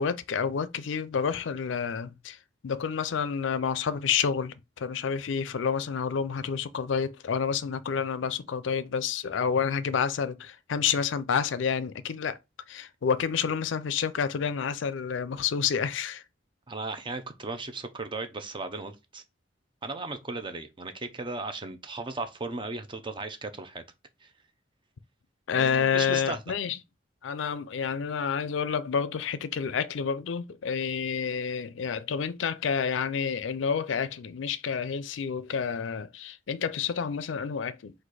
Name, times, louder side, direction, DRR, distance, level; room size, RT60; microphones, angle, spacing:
voice 1, 0.0-2.4 2.6-12.4 12.7-16.2 25.5-26.8 27.2-37.9, left 6 dB, 85° left, 0.4 m, -29 dB
voice 2, 16.7-19.2 19.8-23.8 24.2-24.3 25.5-26.4, right 3 dB, 25° right, 0.6 m, -36 dB
4.1 x 2.6 x 4.7 m
head